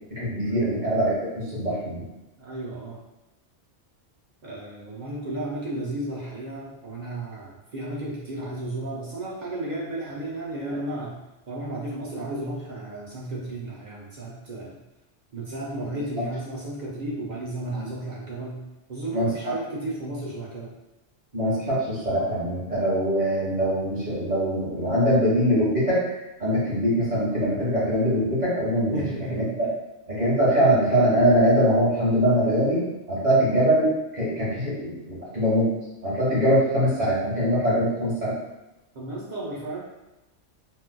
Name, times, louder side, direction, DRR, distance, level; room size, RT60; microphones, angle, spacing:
voice 1, 0.1-1.9 17.7-17.8 19.1-19.5 21.3-26.0 26.4-29.0 29.3-29.7 30.1-35.7 36.0-38.3, equal, 35° right, -9 dB, 1.4 m, -22 dB
voice 2, 2.4-3.0 4.4-14.8 15.3-18.6 18.9-20.8 28.9-29.5 38.9-39.8, right 1 dB, 50° right, -4 dB, 0.6 m, -33 dB
3.8 x 2.4 x 2.2 m, 0.99 s
omnidirectional pair, 1.2 m